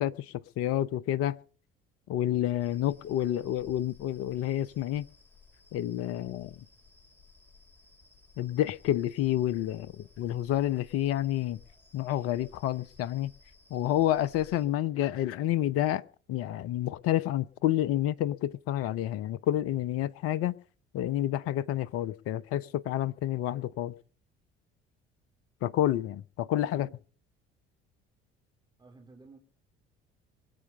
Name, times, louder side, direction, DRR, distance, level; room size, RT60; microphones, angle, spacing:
voice 1, 0.0-1.4 2.1-5.1 5.7-6.7 8.4-11.6 11.9-13.3 13.7-16.0 16.3-20.5 20.9-23.9 25.6-26.9, left 12 dB, 50° left, 0.8 m, -29 dB
sound 1, 2.6-14.7, left 4 dB, 5° left, 7.7 m, -58 dB
voice 2, 26.6-27.0 28.8-29.4, right 3 dB, 15° right, 3.5 m, -53 dB
23.5 x 8.4 x 5.5 m
figure-of-eight pair, 55°, 30 cm